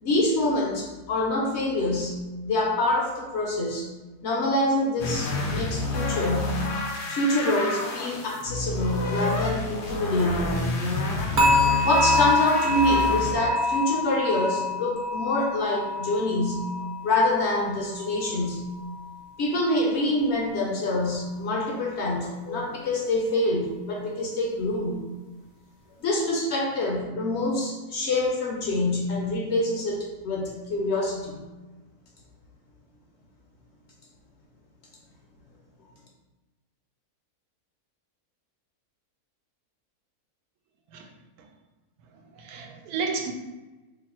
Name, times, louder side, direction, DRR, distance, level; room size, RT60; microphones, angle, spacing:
voice 1, 0.0-2.2 2.4-3.9 4.2-6.6 7.1-10.7 11.3-11.4 11.8-16.7 17.0-18.7 19.4-25.0 26.0-31.4, left 1 dB, 65° left, 0.7 m, -26 dB
sound 1, 5.0-13.3, left 2 dB, 85° left, 0.4 m, -29 dB
sound 2, 11.4-18.4 18.7-19.1 19.6-19.7, left 2 dB, 45° right, 0.7 m, -26 dB
voice 2, 42.4-43.3, right 5 dB, 80° right, 1.1 m, -31 dB
3.0 x 2.5 x 4.2 m
omnidirectional pair, 1.6 m